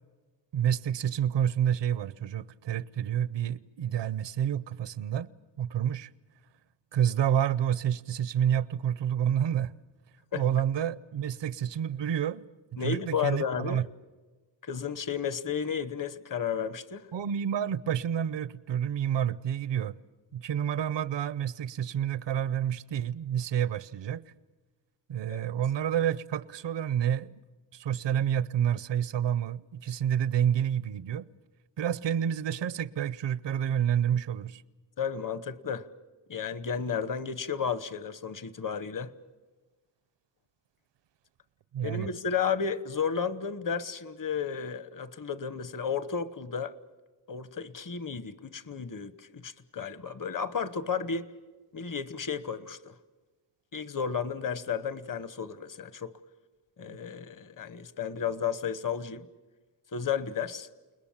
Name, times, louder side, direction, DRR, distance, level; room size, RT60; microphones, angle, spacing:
voice 1, 0.5-5.3 5.6-6.1 6.9-9.7 10.3-12.4 12.7-13.8 17.1-20.0 20.3-24.2 25.1-27.4 27.7-31.3 31.8-34.6 41.7-42.1, right 9 dB, 75° right, 0.8 m, -29 dB
voice 2, 12.8-13.8 14.6-17.0 25.3-25.4 35.0-35.9 36.3-39.1 41.8-46.7 47.3-51.3 51.7-52.9 53.7-56.1 56.8-59.3 59.9-60.7, left 6 dB, 45° left, 1.1 m, -33 dB
29.5 x 20.5 x 7.3 m
wide cardioid pair, 110°, 43 cm